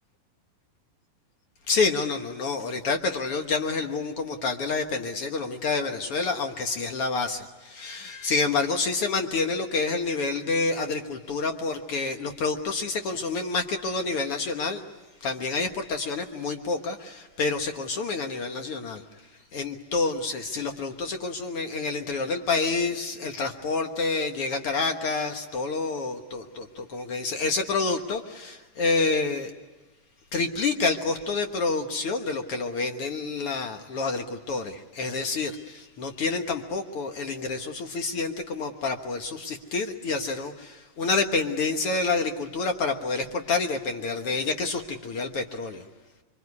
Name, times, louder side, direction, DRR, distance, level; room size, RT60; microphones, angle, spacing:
voice 1, 1.7-14.8 15.2-19.0 19.5-29.5 30.3-45.8, left 3 dB, 75° left, 5 dB, 1.3 m, -28 dB
26.0 x 24.0 x 9.6 m, 1.2 s
omnidirectional pair, 4.5 m